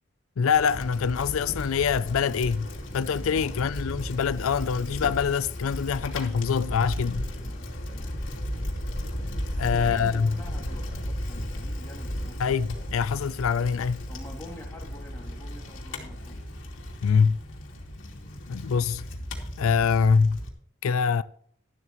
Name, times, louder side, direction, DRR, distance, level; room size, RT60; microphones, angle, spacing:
voice 1, 0.4-2.7 2.9-7.3 9.6-10.4 12.4-14.0 17.0-17.4 18.5-19.1 19.6-20.4 20.8-21.2, left 6 dB, 90° left, 0.4 m, -24 dB
Bicycle, 0.5-20.5, equal, 70° left, 2.7 m, -35 dB
voice 2, 7.4-8.2 9.6-12.4 14.1-16.4, equal, 10° left, 2.5 m, -46 dB
12.5 x 12.5 x 3.0 m
head